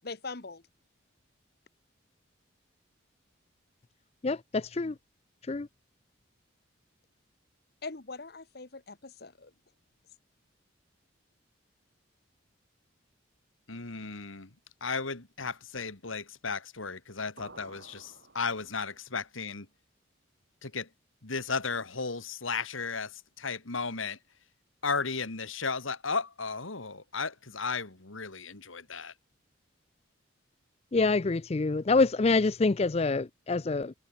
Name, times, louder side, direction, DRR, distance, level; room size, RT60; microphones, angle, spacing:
voice 1, 0.0-0.6 7.8-9.5, left 3 dB, 50° left, 1.2 m, -42 dB
voice 2, 4.2-4.9 5.5-5.7 30.9-33.9, left 3 dB, 30° left, 0.4 m, -26 dB
voice 3, 13.7-14.5 14.8-19.7 20.6-20.9 21.2-24.2 24.8-29.1, left 4 dB, 80° left, 2.4 m, -35 dB
sound 1, 17.4-19.1, right 2 dB, 60° right, 5.4 m, -53 dB
head